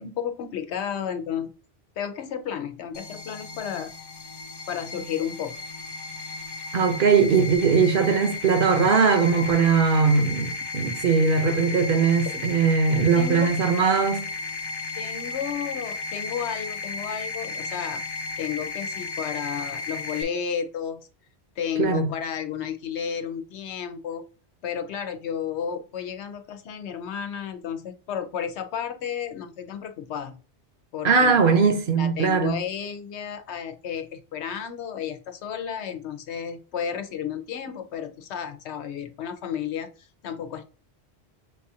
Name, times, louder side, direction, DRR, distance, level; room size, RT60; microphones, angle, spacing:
voice 1, 0.0-1.5 2.0-3.9 4.7-5.5 12.3-12.5 13.1-13.6 15.0-18.0 18.4-21.0 21.6-24.3 24.6-30.4 30.9-31.6 32.0-40.6, left 8 dB, 85° left, 0.9 m, -32 dB
sound 1, 2.9-20.2, left 3 dB, 40° left, 0.3 m, -34 dB
voice 2, 6.7-14.3 21.8-22.1 31.0-32.6, right 5 dB, 60° right, 0.9 m, -20 dB
6.6 x 2.4 x 2.7 m
omnidirectional pair, 1.1 m